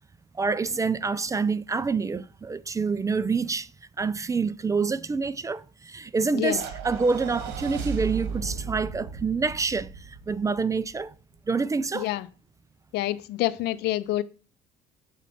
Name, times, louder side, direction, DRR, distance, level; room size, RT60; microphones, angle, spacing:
voice 1, 0.3-3.7 4.0-11.1 11.5-12.1, right 4 dB, 20° right, 0.3 m, -27 dB
sound 1, 6.5-10.9, right 6 dB, 80° right, 1.3 m, -35 dB
voice 2, 11.9-12.3 12.9-14.2, left 15 dB, 80° left, 0.5 m, -27 dB
7.3 x 4.1 x 4.2 m
cardioid pair, 110°, 17 cm